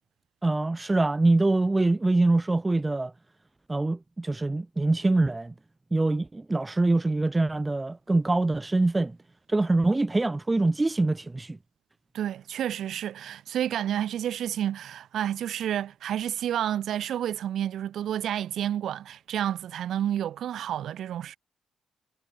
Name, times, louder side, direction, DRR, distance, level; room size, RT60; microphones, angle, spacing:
voice 1, 0.4-3.1 3.7-5.5 5.9-9.2 9.5-11.6, right 2 dB, 15° right, 2.5 m, -24 dB
voice 2, 12.1-21.4, right 10 dB, 60° right, 4.4 m, -30 dB
cardioid pair, 140°, 0 cm